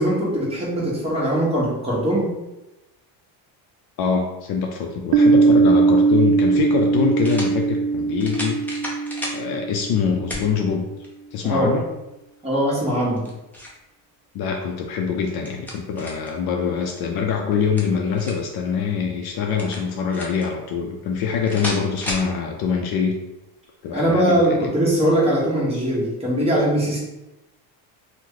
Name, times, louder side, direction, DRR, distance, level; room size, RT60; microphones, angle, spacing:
voice 1, 0.0-2.4 11.4-11.7 12.4-13.3 23.9-27.0, right 1 dB, 15° right, -6 dB, 1.1 m, -21 dB
voice 2, 4.0-8.8 9.3-10.9 11.3-11.8 14.3-23.2 23.8-24.7, left 6 dB, 55° left, 2 dB, 0.5 m, -24 dB
Piano, 5.1-10.5, right 4 dB, 60° right, 0.5 m, -19 dB
sound 1, 6.0-6.1 7.2-7.5 8.2-9.4 10.3-10.5 11.0-11.1 13.0-13.8 15.2-16.3 17.5-18.5 19.6-20.5 21.5-22.3, equal, 5° left, 0.5 m, -32 dB
2.9 x 2.1 x 3.6 m, 0.96 s
cardioid pair, 120°, 47 cm